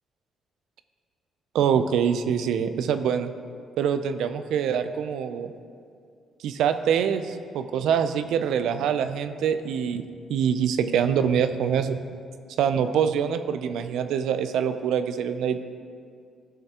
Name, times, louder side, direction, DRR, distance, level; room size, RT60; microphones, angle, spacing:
voice 1, 1.5-3.3 3.8-5.5 6.4-10.0 10.3-12.0 12.6-15.6, right 8 dB, 80° right, 10 dB, 0.4 m, -24 dB
15.5 x 5.6 x 2.9 m, 2.3 s
cardioid pair, 90°, 0 cm